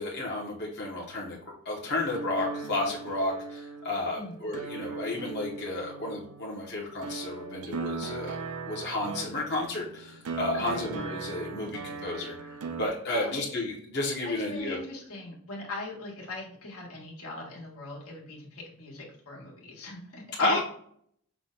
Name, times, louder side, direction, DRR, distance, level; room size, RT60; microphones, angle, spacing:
voice 1, 0.0-1.4 1.6-8.3 8.7-14.8 20.4-20.6, left 2 dB, 50° left, -3 dB, 0.9 m, -32 dB
sound 1, 2.1-12.9, right 4 dB, 85° right, 0.5 m, -39 dB
voice 2, 10.5-10.9 13.1-13.4 14.2-20.6, left 2 dB, 80° left, -2 dB, 1.5 m, -40 dB
5.7 x 2.2 x 3.8 m, 0.65 s
head